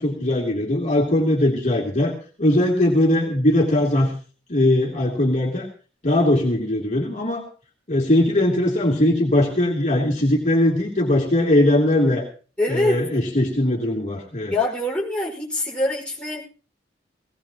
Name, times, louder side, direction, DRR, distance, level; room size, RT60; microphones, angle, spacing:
voice 1, 0.0-2.1 2.4-4.1 4.5-5.7 6.0-7.4 7.9-12.2 12.7-14.5, left 1 dB, 40° left, -2 dB, 3.1 m, -20 dB
voice 2, 12.6-13.0 14.5-16.4, left 1 dB, 5° left, -4 dB, 5.4 m, -24 dB
19.0 x 18.5 x 3.0 m, 0.38 s
head